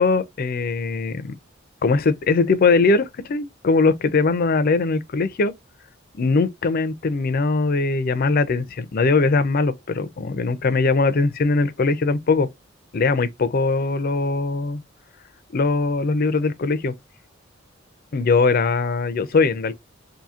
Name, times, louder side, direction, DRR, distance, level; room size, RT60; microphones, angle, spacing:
voice 1, 0.0-1.3 1.8-5.5 6.1-12.5 12.9-14.8 15.5-16.9 18.1-19.7, left 3 dB, 50° left, 0.5 m, -21 dB
2.8 x 2.6 x 3.6 m
head